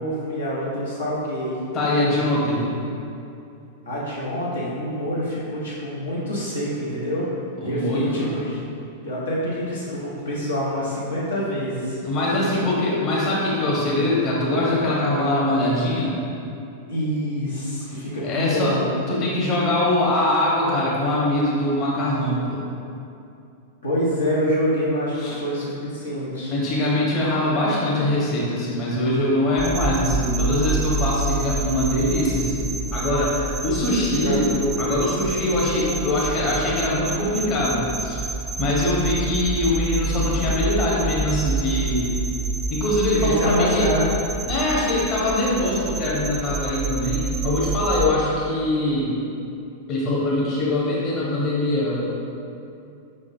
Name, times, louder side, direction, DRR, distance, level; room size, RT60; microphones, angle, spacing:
voice 1, 0.0-1.6 3.8-7.3 7.6-8.6 9.0-12.0 12.4-12.6 16.9-18.9 23.8-26.5 34.2-34.4 43.1-44.1, equal, 80° left, -7 dB, 0.9 m, -26 dB
voice 2, 1.7-2.7 7.6-8.4 12.0-16.2 18.2-18.7 19.1-22.6 25.2-25.4 26.5-38.2 38.6-42.2 42.7-43.9 44.5-49.1 49.9-52.1, left 1 dB, 35° left, -6 dB, 1.2 m, -22 dB
sound 1, 29.6-48.1, right 3 dB, 25° right, 0.3 m, -28 dB
5.1 x 3.7 x 2.7 m, 2.7 s
figure-of-eight pair, 95°, 0 cm